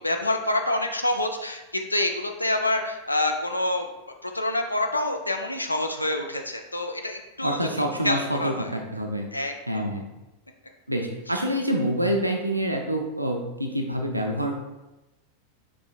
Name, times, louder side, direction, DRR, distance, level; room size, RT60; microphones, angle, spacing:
voice 1, 0.0-3.9 4.2-7.6 8.0-8.7 9.3-9.9, left 1 dB, 85° left, 5 dB, 0.3 m, -27 dB
voice 2, 7.4-9.3 9.7-10.1 10.9-14.5, equal, 85° right, 2 dB, 0.4 m, -27 dB
5.1 x 3.4 x 2.3 m, 1.0 s
figure-of-eight pair, 90°, 0 cm